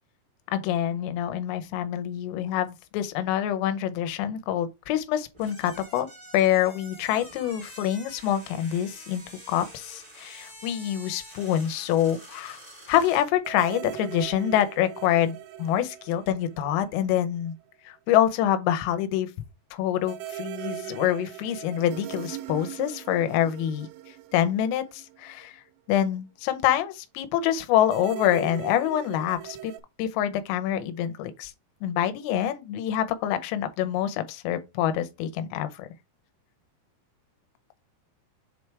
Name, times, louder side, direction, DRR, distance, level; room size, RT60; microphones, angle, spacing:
voice 1, 0.5-6.1 6.3-12.6 12.9-17.5 17.9-19.3 19.7-25.6 25.9-29.7 30.0-31.5 31.8-35.9, left 11 dB, 85° left, 3.4 m, -26 dB
sound 1, 5.3-13.3, equal, 30° right, 0.9 m, -47 dB
sound 2, 13.4-17.2 17.5-17.6 20.0-25.5 27.8-29.8, right 12 dB, 90° right, 3.4 m, -39 dB
7.6 x 3.3 x 4.6 m
omnidirectional pair, 5.8 m